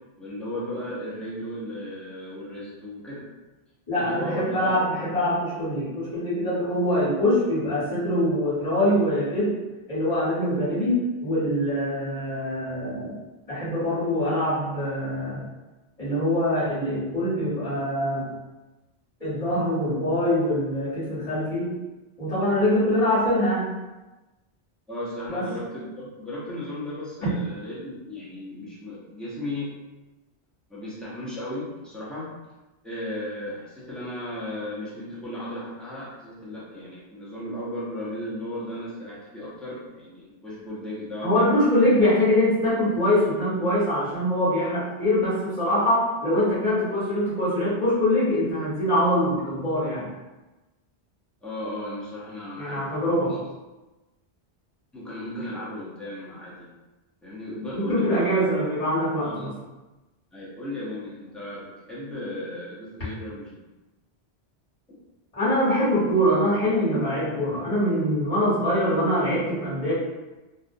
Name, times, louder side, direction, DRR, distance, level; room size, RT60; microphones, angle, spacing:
voice 1, 0.2-3.2 3.9-4.8 24.9-29.7 30.7-32.3 32.8-41.6 51.4-53.4 54.9-56.7 57.2-58.4 59.2-59.5 60.3-63.5, left 1 dB, ahead, -8 dB, 0.5 m, -35 dB
voice 2, 3.9-9.5 9.9-13.1 13.5-15.5 16.0-18.3 19.2-21.7 22.2-23.7 25.3-25.5 27.2-27.3 41.2-50.1 52.6-53.3 57.7-59.5 65.3-69.9, equal, 35° left, -12 dB, 1.2 m, -23 dB
2.4 x 2.0 x 2.6 m, 1.1 s
omnidirectional pair, 1.1 m